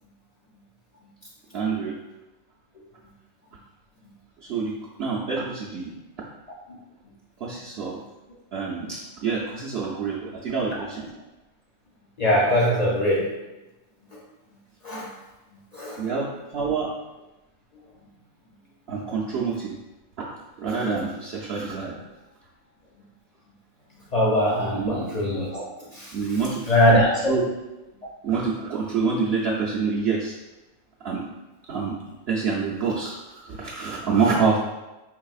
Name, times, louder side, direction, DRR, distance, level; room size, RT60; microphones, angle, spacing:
voice 1, 1.5-2.0 4.4-5.9 7.4-8.0 8.5-11.1 16.0-16.9 18.9-19.8 20.6-22.0 24.7-25.0 26.1-26.6 27.3-27.5 28.2-30.4 31.0-31.3 31.7-32.0 32.3-34.6, right 5 dB, 60° right, -5 dB, 0.7 m, -26 dB
voice 2, 12.2-13.4 14.1-14.2 14.8-15.1 15.7-16.1 24.1-25.6 25.9-26.2 26.7-27.4, left 1 dB, 50° left, -3 dB, 0.4 m, -21 dB
4.6 x 3.3 x 2.4 m, 1.0 s
omnidirectional pair, 1.4 m